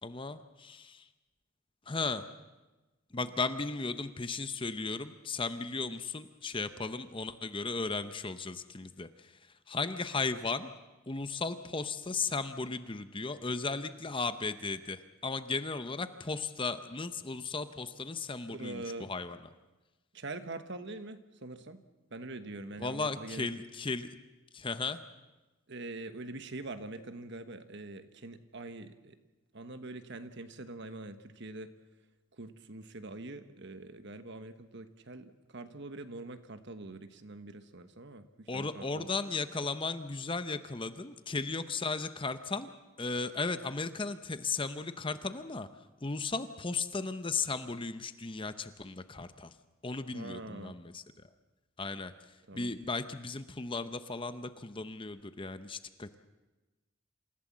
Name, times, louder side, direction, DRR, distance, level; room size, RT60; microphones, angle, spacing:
voice 1, 0.0-1.1 1.9-2.3 3.1-9.3 9.7-10.7 11.1-19.4 22.8-24.1 24.5-25.0 38.5-42.7 43.0-45.7 46.0-49.5 49.8-51.0 51.8-52.1 52.5-56.1, left 4 dB, 25° left, 11 dB, 0.7 m, -36 dB
voice 2, 18.5-19.1 20.1-21.8 22.1-23.5 25.7-29.2 29.5-31.7 32.4-39.1 50.1-50.8 52.5-52.7, right 2 dB, 55° right, 10 dB, 1.3 m, -44 dB
27.5 x 15.5 x 7.4 m, 1.1 s
head